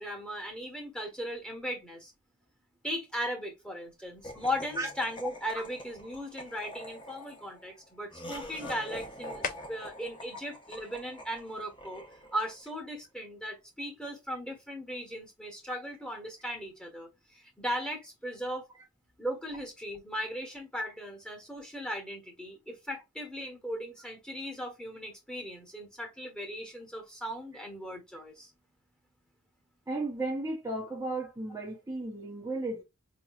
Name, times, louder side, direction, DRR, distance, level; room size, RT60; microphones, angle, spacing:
voice 1, 0.0-2.1 2.8-12.0 12.3-18.7 19.2-28.5, equal, 5° left, 1.2 m, -37 dB
sound 1, 3.8-11.8, left 5 dB, 40° left, 0.6 m, -48 dB
Laughter, 4.2-12.6, equal, 20° left, 1.0 m, -46 dB
voice 2, 29.9-32.8, right 2 dB, 15° right, 0.8 m, -34 dB
5.3 x 2.9 x 2.3 m
head